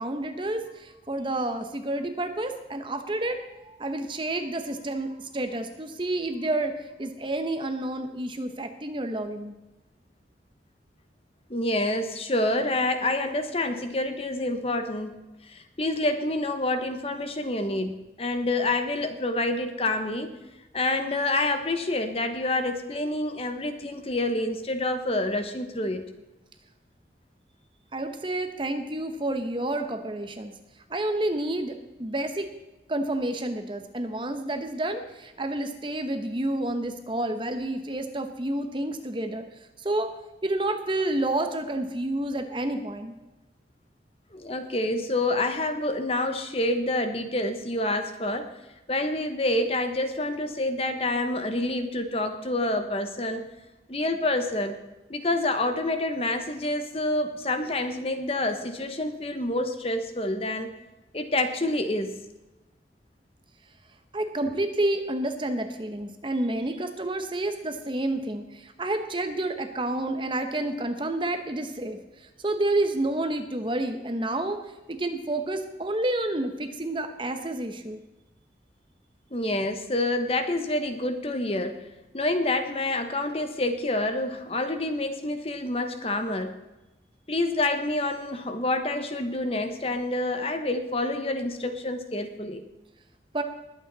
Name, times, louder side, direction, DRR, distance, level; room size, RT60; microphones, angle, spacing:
voice 1, 0.0-9.5 27.9-30.5 30.9-32.5 32.9-39.4 39.8-40.1 40.4-43.1 64.1-72.0 72.4-74.6 74.9-78.0 93.3-93.4, right 1 dB, 30° right, 7 dB, 1.0 m, -29 dB
voice 2, 11.5-15.2 15.5-20.3 20.7-26.0 44.3-48.5 48.9-53.5 53.9-54.8 55.1-60.7 61.1-62.2 79.3-81.8 82.1-86.5 87.3-92.6, left 2 dB, 35° left, 7 dB, 1.1 m, -27 dB
20.5 x 8.7 x 4.1 m, 1.0 s
head